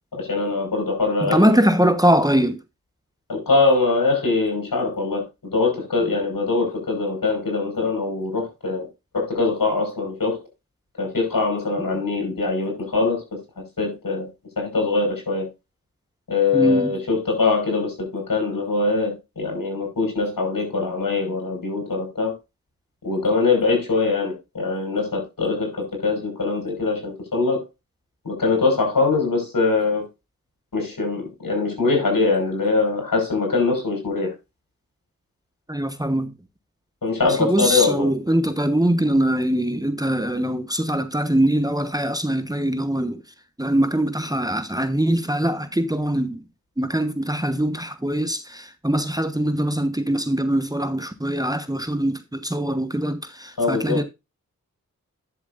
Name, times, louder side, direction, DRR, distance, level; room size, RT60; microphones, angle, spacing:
voice 1, 0.1-1.5 3.3-8.9 9.1-10.4 11.0-13.4 13.8-14.3 14.6-15.5 16.3-22.3 23.0-27.6 28.2-30.0 30.7-34.3 37.0-38.1 53.6-54.0, left 3 dB, 75° left, 6.1 m, -22 dB
voice 2, 1.2-2.6 16.5-16.9 35.7-36.3 37.4-43.2 43.6-46.4 46.8-54.0, right 1 dB, 10° right, 1.1 m, -22 dB
11.0 x 7.4 x 2.6 m
cardioid pair, 45°, 33 cm